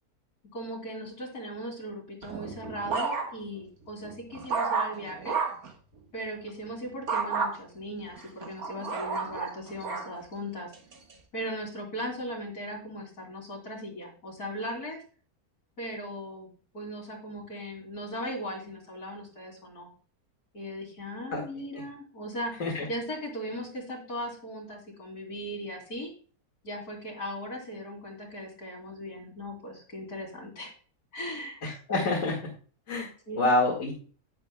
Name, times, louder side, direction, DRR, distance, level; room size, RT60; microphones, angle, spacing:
voice 1, 0.5-5.4 6.1-10.7 11.3-15.0 15.8-16.5 16.7-19.9 20.5-22.6 22.9-26.1 26.6-30.7 31.1-31.6 33.3-33.6, equal, 75° left, 0 dB, 3.3 m, -38 dB
sound 1, 2.2-3.6 4.0-5.7 7.1-7.5 8.2-10.1 10.7-11.1, right 5 dB, 70° right, 2.0 m, -31 dB
voice 2, 31.6-32.4 32.9-33.1 33.4-33.9, left 2 dB, 55° left, -2 dB, 2.3 m, -26 dB
11.0 x 9.7 x 2.2 m, 0.39 s
omnidirectional pair, 1.6 m